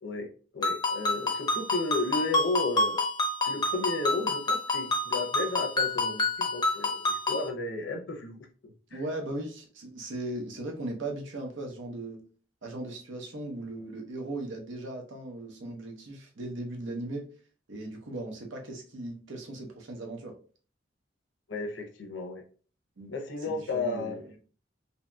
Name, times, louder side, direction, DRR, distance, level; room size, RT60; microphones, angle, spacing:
voice 1, 0.0-3.0 3.4-9.0 21.5-22.4 23.1-24.2, left 3 dB, 85° left, 2 dB, 0.6 m, -33 dB
Ringtone, 0.6-7.5, left 2 dB, 20° left, 0.5 m, -28 dB
voice 2, 8.9-12.2 12.6-17.3 17.7-20.3 23.0-23.1 23.4-24.4, right 2 dB, 85° right, 1 dB, 0.8 m, -38 dB
2.8 x 2.7 x 2.2 m, 0.40 s
head